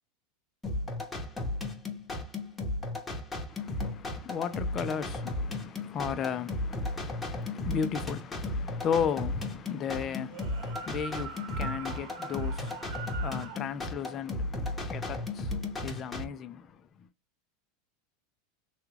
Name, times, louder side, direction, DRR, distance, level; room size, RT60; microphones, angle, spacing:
sound 1, 0.6-16.2, left 2 dB, 10° left, 1.0 m, -35 dB
voice 1, 3.5-17.1, left 7 dB, 30° left, 0.5 m, -35 dB
sound 2, 10.2-13.6, right 6 dB, 60° right, 1.0 m, -43 dB
3.6 x 2.3 x 3.2 m
supercardioid pair, 135°, 0 cm